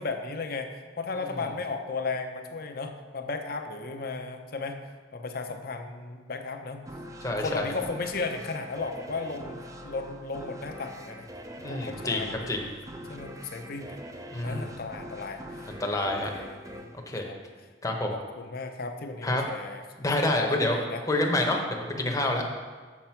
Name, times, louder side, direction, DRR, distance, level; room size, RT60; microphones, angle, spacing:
voice 1, 0.0-4.8 5.1-6.8 7.4-9.6 9.8-11.3 11.6-12.5 13.1-15.7 15.9-16.9 17.2-17.4 18.1-19.8 20.4-21.0, left 4 dB, 55° left, 6 dB, 0.7 m, -35 dB
sound 1, 6.9-18.0, equal, 20° right, 0.5 m, -44 dB
voice 2, 7.2-7.7 11.6-12.7 14.3-14.7 15.7-16.3 17.1-17.3 17.8-18.1 19.2-19.5 20.0-22.4, left 1 dB, 20° left, 1 dB, 0.8 m, -28 dB
7.3 x 6.5 x 4.5 m, 1.5 s
head